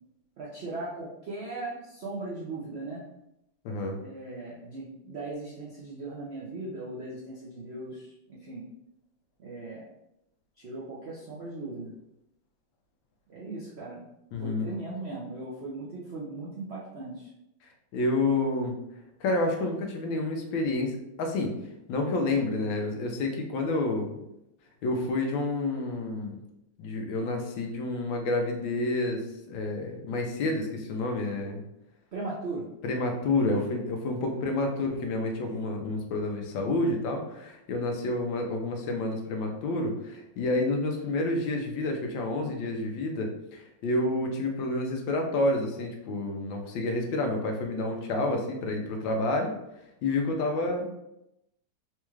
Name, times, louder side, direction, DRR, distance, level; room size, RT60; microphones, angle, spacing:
voice 1, 0.4-3.0 4.0-8.6 9.4-9.9 10.6-11.9 13.3-14.0 14.4-17.3 32.1-32.7, right 2 dB, 80° right, -5 dB, 0.5 m, -38 dB
voice 2, 3.6-4.0 14.3-14.7 17.9-18.8 19.2-21.6 21.9-24.2 24.8-26.3 26.8-31.6 32.8-49.5 50.0-50.9, left 2 dB, 80° left, 3 dB, 1.4 m, -29 dB
4.2 x 2.3 x 3.1 m, 0.85 s
omnidirectional pair, 2.1 m